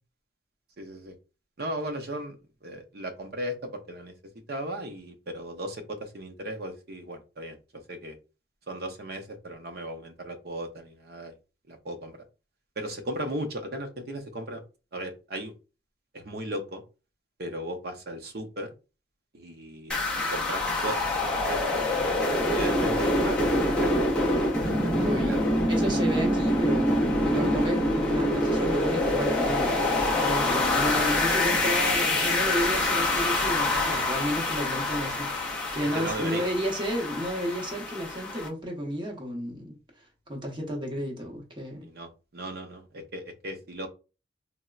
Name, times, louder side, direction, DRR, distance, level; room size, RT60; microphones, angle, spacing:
voice 1, 0.8-1.1 1.6-2.4 2.6-4.1 4.5-7.6 7.9-8.2 8.7-11.3 11.7-12.1 12.8-14.6 14.9-15.5 16.1-16.8 17.4-18.7 19.3-21.0 21.5-21.6 22.2-24.1 24.7-25.5 35.9-36.5 41.8-43.9, right 1 dB, 55° right, 0.6 m, -36 dB
sound 1, 19.9-38.5, left 1 dB, 5° left, 0.4 m, -26 dB
voice 2, 25.0-25.4 25.7-39.8 40.3-41.9, equal, 25° right, 0.7 m, -32 dB
4.0 x 2.0 x 2.3 m
head